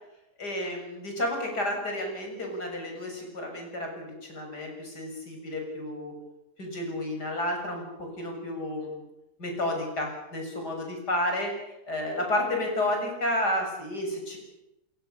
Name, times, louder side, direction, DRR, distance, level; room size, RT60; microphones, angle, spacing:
voice 1, 0.4-6.1 6.6-9.0 9.4-11.5 11.9-14.4, left 1 dB, 75° left, 2 dB, 7.8 m, -31 dB
29.5 x 21.5 x 7.1 m, 0.90 s
omnidirectional pair, 1.7 m